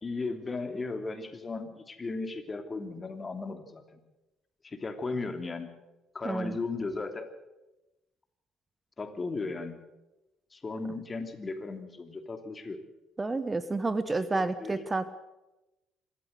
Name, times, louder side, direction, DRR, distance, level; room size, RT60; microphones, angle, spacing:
voice 1, 0.0-3.8 4.6-5.7 6.1-7.3 9.0-9.8 10.5-12.8 14.1-14.7, left 3 dB, 30° left, 7 dB, 3.0 m, -36 dB
voice 2, 6.2-6.6 13.2-15.1, right 3 dB, 25° right, 14 dB, 1.1 m, -30 dB
26.0 x 13.0 x 8.1 m, 1.0 s
figure-of-eight pair, 50°, 0 cm